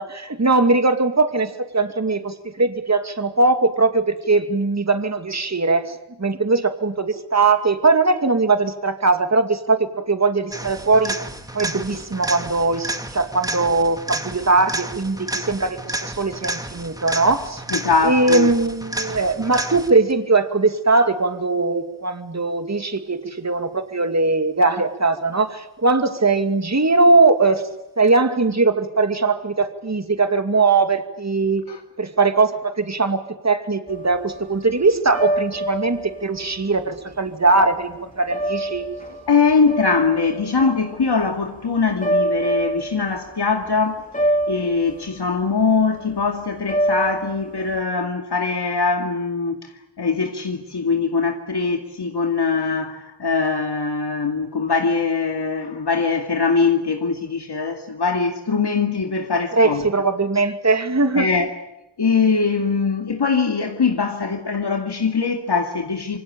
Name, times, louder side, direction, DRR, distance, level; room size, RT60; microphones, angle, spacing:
voice 1, 0.0-11.2 11.5-17.6 18.0-27.6 28.0-31.6 32.0-38.9 59.5-61.3, right 3 dB, 40° right, 2.4 m, -20 dB
sound 1, 10.5-20.1 28.1-28.2, right 1 dB, 10° right, 2.6 m, -31 dB
voice 2, 17.7-18.5 31.7-31.8 39.3-49.7 50.0-59.8 61.2-61.5 62.0-66.2, left 4 dB, 70° left, 2.4 m, -22 dB
sound 2, 33.9-47.8, right 1 dB, 20° left, 3.6 m, -26 dB
27.0 x 24.0 x 8.8 m
wide cardioid pair, 60°, 41 cm